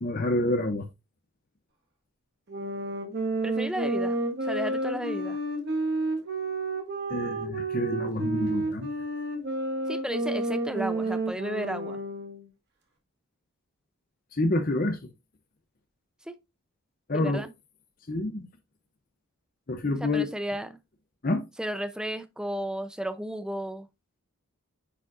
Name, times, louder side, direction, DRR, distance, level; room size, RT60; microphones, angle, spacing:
voice 1, 0.0-0.9 7.1-8.9 14.3-15.0 17.1-17.4 18.1-18.5 19.7-20.3 21.2-21.5, left 2 dB, 40° left, 0.7 m, -27 dB
Sax Alto - G minor, 2.5-12.5, right 2 dB, 50° right, 1.6 m, -30 dB
voice 2, 3.4-5.4 9.9-12.0 16.3-16.4 17.1-17.5 20.0-20.7 21.6-23.9, right 1 dB, 5° right, 0.6 m, -33 dB
9.6 x 5.1 x 2.5 m
head